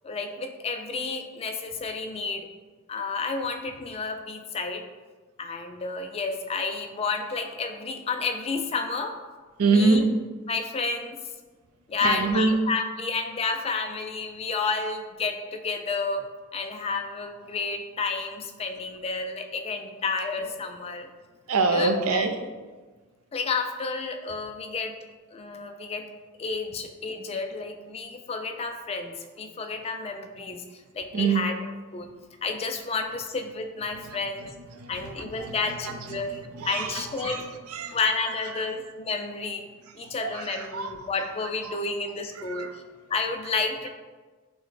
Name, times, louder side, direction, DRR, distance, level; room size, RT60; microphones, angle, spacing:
voice 1, 0.0-2.5 2.9-4.8 5.4-9.2 9.7-10.0 10.5-11.2 11.9-16.2 16.5-21.1 21.7-22.2 23.3-24.9 25.3-26.0 26.4-31.6 31.9-32.1 32.4-34.5 34.9-37.4 37.9-39.7 40.0-42.8 43.1-43.9, left 4 dB, 30° left, 5 dB, 0.3 m, -31 dB
voice 2, 9.6-10.1 12.0-12.5 21.5-22.7 31.1-31.4 34.0-38.0 38.3-38.7 40.0-41.1 41.6-41.8 42.3-42.8, right 4 dB, 80° right, 6 dB, 0.5 m, -27 dB
6.1 x 2.1 x 3.2 m, 1.3 s
head